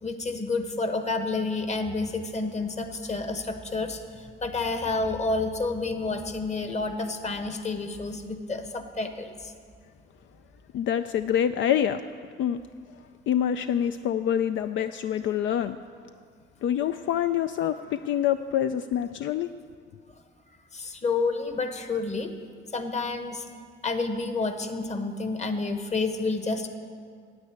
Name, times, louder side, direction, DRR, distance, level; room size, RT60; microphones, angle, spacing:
voice 1, 0.0-9.5 20.7-22.4 22.7-23.5 23.8-26.7, left 3 dB, 35° left, 7 dB, 1.2 m, -29 dB
voice 2, 10.7-12.0 12.4-12.6 13.3-15.8 16.6-19.5, left 10 dB, 70° left, 10 dB, 0.4 m, -26 dB
9.5 x 8.6 x 8.8 m, 2.1 s
cardioid pair, 90°, 20 cm